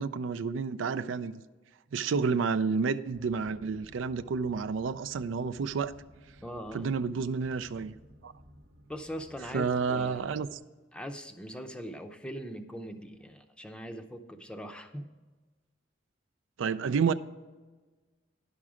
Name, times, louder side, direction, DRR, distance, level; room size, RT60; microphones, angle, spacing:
voice 1, 0.0-1.4 1.9-5.9 6.7-7.9 8.2-8.3 9.5-10.5 16.6-17.1, right 5 dB, 85° right, 0.4 m, -30 dB
sound 1, 3.1-10.6, equal, 60° right, 0.9 m, -56 dB
voice 2, 6.4-6.9 8.9-10.5 10.9-15.1, equal, 5° left, 0.5 m, -41 dB
10.5 x 6.0 x 4.9 m
head